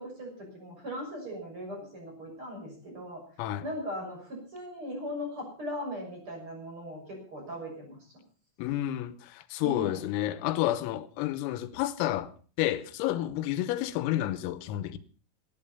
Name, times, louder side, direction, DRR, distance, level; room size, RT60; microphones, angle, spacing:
voice 1, 0.0-3.2 3.6-8.0 9.6-10.0, equal, 25° right, 6.7 m, -39 dB
voice 2, 8.6-12.3 12.6-15.0, left 14 dB, 90° left, 3.6 m, -30 dB
18.0 x 11.5 x 5.5 m
omnidirectional pair, 5.9 m